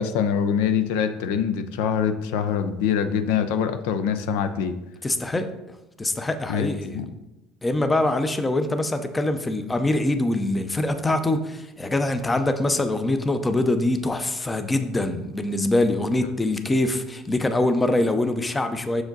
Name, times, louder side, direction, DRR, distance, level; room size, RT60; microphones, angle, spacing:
voice 1, 0.0-4.8 6.5-7.1, left 7 dB, 90° left, 10 dB, 0.5 m, -24 dB
voice 2, 5.0-7.0 7.6-19.0, left 2 dB, 15° left, 9 dB, 0.5 m, -24 dB
6.2 x 4.9 x 3.9 m, 0.94 s
cardioid pair, 125°, 0 cm